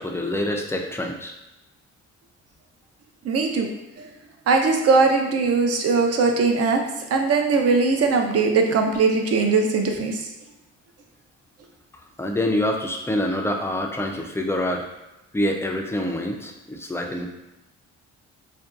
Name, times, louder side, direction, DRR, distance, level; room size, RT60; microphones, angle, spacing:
voice 1, 0.0-1.3 12.2-14.8 15.3-17.3, left 1 dB, 10° left, 1 dB, 0.4 m, -26 dB
voice 2, 3.2-3.7 4.5-6.8 7.1-10.3, right 4 dB, 45° right, 3 dB, 0.5 m, -20 dB
2.6 x 2.2 x 2.4 m, 0.95 s
hypercardioid pair, 55°, 34 cm